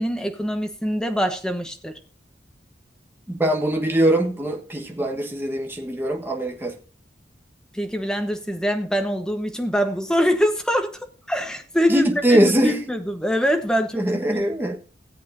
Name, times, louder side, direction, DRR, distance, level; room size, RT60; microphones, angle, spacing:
voice 1, 0.0-1.9 7.7-10.9 11.3-14.1, equal, 5° left, 1.0 m, -24 dB
voice 2, 3.3-6.8 11.9-12.8 14.0-14.8, right 1 dB, 10° right, 1.3 m, -22 dB
16.5 x 8.1 x 2.6 m
head